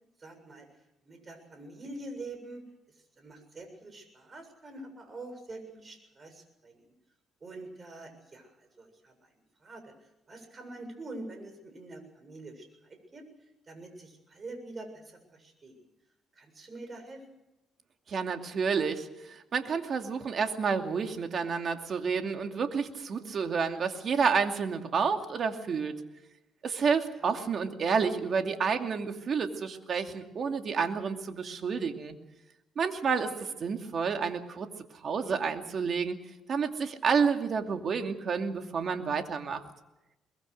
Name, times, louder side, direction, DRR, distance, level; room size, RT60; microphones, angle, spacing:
voice 1, 0.2-0.7 1.0-2.6 3.2-6.8 7.4-9.1 9.6-9.9 10.3-13.2 13.7-15.8 16.4-17.2 27.2-27.4 33.4-33.5, right 2 dB, 35° right, 7 dB, 7.3 m, -45 dB
voice 2, 18.1-26.0 26.6-32.1 32.8-33.3 33.6-34.7 34.9-36.2 36.5-39.6, right 5 dB, 55° right, 5 dB, 2.6 m, -30 dB
23.0 x 22.5 x 6.7 m, 0.93 s
cardioid pair, 90°, 0 cm